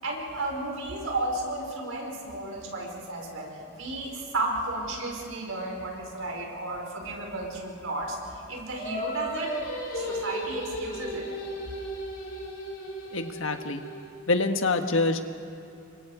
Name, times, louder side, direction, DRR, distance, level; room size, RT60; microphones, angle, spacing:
voice 1, 0.0-9.6 9.9-11.3, right 2 dB, 80° right, 0 dB, 5.2 m, -33 dB
Singing, 8.7-14.1, equal, 40° left, 6.4 m, -35 dB
voice 2, 13.1-13.8 14.3-15.2, left 3 dB, 70° left, 6 dB, 1.5 m, -25 dB
29.5 x 24.0 x 5.0 m, 2.7 s
head